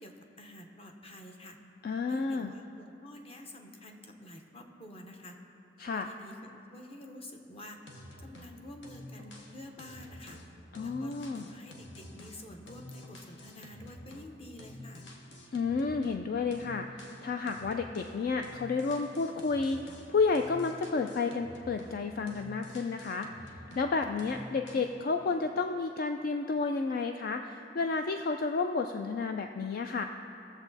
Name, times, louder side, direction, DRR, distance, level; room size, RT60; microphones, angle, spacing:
voice 1, 0.0-1.6 2.1-5.4 5.9-6.4 6.7-7.8 8.2-10.4 10.8-15.1, left 1 dB, 30° left, 3 dB, 0.9 m, -49 dB
voice 2, 1.8-2.5 5.8-6.1 10.7-11.4 15.5-16.9 17.2-19.8 20.1-23.3 23.8-30.1, left 4 dB, 50° left, 5 dB, 0.4 m, -31 dB
sound 1, 7.9-8.5 8.8-14.3 14.6-16.2 16.5-18.2 18.4-22.0 22.3-23.9 24.2-24.9, left 1 dB, 75° left, 1.2 m, -49 dB
18.0 x 7.1 x 4.0 m, 2.9 s
head